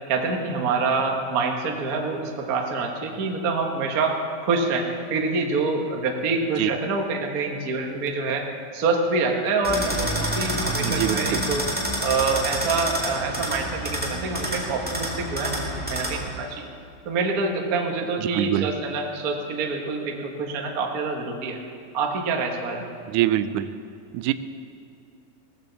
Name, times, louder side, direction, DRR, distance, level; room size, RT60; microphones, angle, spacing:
voice 1, 0.1-4.2 4.4-8.4 8.7-11.6 12.0-16.7 17.0-21.6 21.9-22.9, right 4 dB, 60° right, 2 dB, 0.9 m, -26 dB
sound 1, 9.6-16.3, equal, 5° right, 1.2 m, -28 dB
voice 2, 10.8-11.4 18.4-18.7 23.1-23.7 24.1-24.3, right 13 dB, 80° right, 12 dB, 1.9 m, -23 dB
17.5 x 14.0 x 4.0 m, 2.5 s
omnidirectional pair, 3.8 m